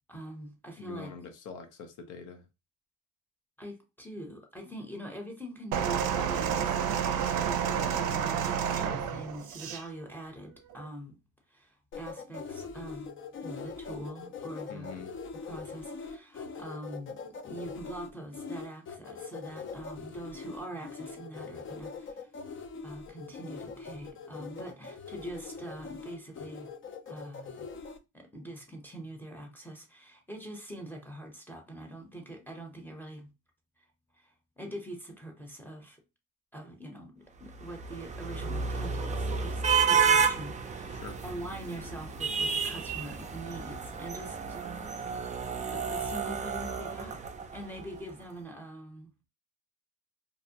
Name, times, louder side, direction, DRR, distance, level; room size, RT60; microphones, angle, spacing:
voice 1, 0.1-1.1 3.6-6.8 7.2-11.2 11.5-15.0 15.3-22.3 22.8-26.7 27.1-33.3 33.8-33.9 34.1-36.0 36.5-45.2 45.7-47.2 47.5-49.1, right 1 dB, 5° left, 0.7 m, -44 dB
voice 2, 0.8-2.5 14.7-15.1 40.9-41.2, left 6 dB, 80° left, 0.7 m, -44 dB
sound 1, 5.7-9.8 10.7-10.9, right 8 dB, 85° right, 0.5 m, -30 dB
sound 2, 11.9-28.0, left 5 dB, 45° left, 0.4 m, -42 dB
sound 3, 37.5-47.8, right 6 dB, 25° right, 0.4 m, -31 dB
2.5 x 2.1 x 2.7 m
cardioid pair, 90°, 30 cm